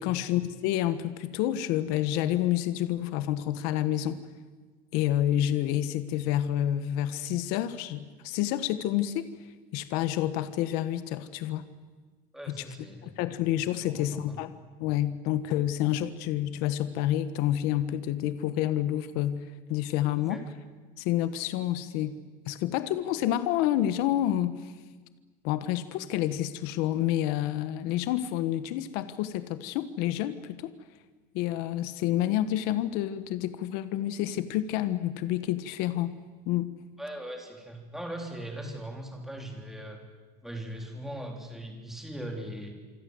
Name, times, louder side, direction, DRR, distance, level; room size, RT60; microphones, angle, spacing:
voice 1, 0.0-4.2 4.9-9.3 9.7-11.6 12.5-12.6 13.0-14.5 14.8-20.4 21.0-22.2 22.5-24.7 25.4-30.7 31.3-36.2 36.4-36.7, left 12 dB, 55° left, 12 dB, 1.3 m, -29 dB
voice 2, 12.3-13.2 13.8-14.4 20.2-20.4 37.0-40.0 40.4-42.7, right 1 dB, ahead, 2 dB, 3.5 m, -40 dB
27.0 x 24.5 x 7.9 m, 1.4 s
cardioid pair, 175°, 19 cm